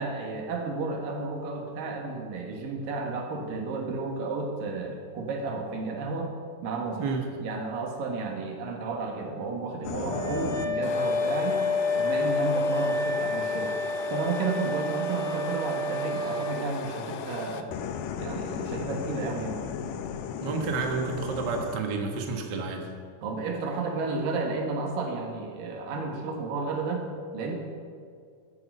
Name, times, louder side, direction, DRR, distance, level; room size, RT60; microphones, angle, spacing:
voice 1, 0.0-6.3 6.6-7.1 7.4-11.6 12.0-13.8 14.1-17.8 18.2-19.6 23.2-27.0 27.3-27.5, right 3 dB, 75° right, 1 dB, 3.1 m, -32 dB
sound 1, 9.8-21.8, left 8 dB, 80° left, 2.3 m, -36 dB
Wind instrument woodwind instrument, 10.1-16.6, left 2 dB, 45° left, 1.3 m, -29 dB
voice 2, 20.4-22.9, right 4 dB, 55° right, 2 dB, 1.2 m, -30 dB
14.0 x 9.7 x 5.4 m, 2.1 s
omnidirectional pair, 4.1 m